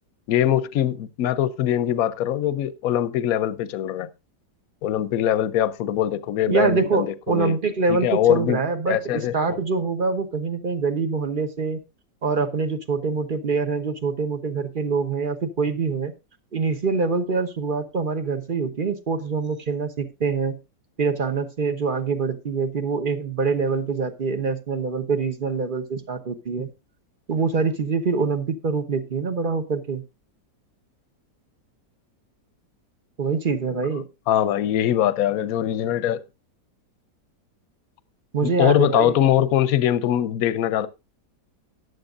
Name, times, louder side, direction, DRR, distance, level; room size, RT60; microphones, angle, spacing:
voice 1, 0.3-4.1 4.8-7.6 7.9-8.6 8.9-9.6 34.3-36.2 38.4-40.9, left 11 dB, 65° left, 1.1 m, -22 dB
voice 2, 6.5-11.8 12.2-16.1 16.5-20.6 21.0-26.7 27.3-30.0 33.2-34.1 38.3-39.3, right 4 dB, 35° right, 1.0 m, -25 dB
14.5 x 10.0 x 2.5 m
omnidirectional pair, 1.8 m